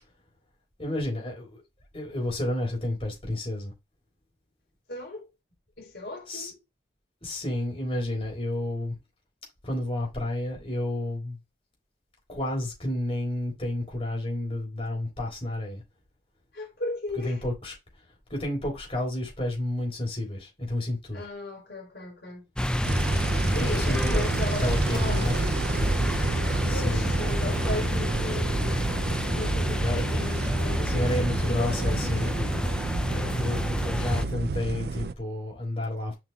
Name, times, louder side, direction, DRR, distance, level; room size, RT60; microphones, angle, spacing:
voice 1, 0.8-1.6 1.9-3.7 6.3-6.5 7.2-8.9 9.6-11.4 12.3-15.8 17.2-17.7 18.3-21.2 23.6-24.2 24.6-25.4 26.7-27.1 29.7-30.0 30.9-32.5 33.1-36.1, left 1 dB, 35° left, 4.0 m, -30 dB
voice 2, 4.9-5.3 5.8-6.6 16.5-17.4 21.1-22.5 23.5-25.9 26.7-28.9 29.2-32.4, left 2 dB, 70° left, 3.9 m, -37 dB
sound 1, 22.6-34.2, equal, 5° left, 0.4 m, -28 dB
sound 2, 22.8-35.1, right 3 dB, 60° right, 0.4 m, -30 dB
7.6 x 5.8 x 2.4 m
head